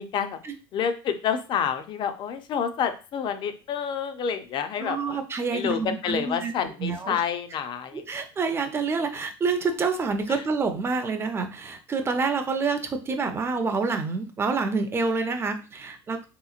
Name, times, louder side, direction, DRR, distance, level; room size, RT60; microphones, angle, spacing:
voice 1, 0.0-0.4 0.7-5.2 5.5-8.0 10.3-10.4, left 7 dB, 40° left, 9 dB, 0.5 m, -28 dB
voice 2, 4.8-6.5 6.8-7.2 7.9-16.3, right 4 dB, 20° right, 6 dB, 0.5 m, -27 dB
3.4 x 2.9 x 2.4 m, 0.32 s
supercardioid pair, 115°, 12 cm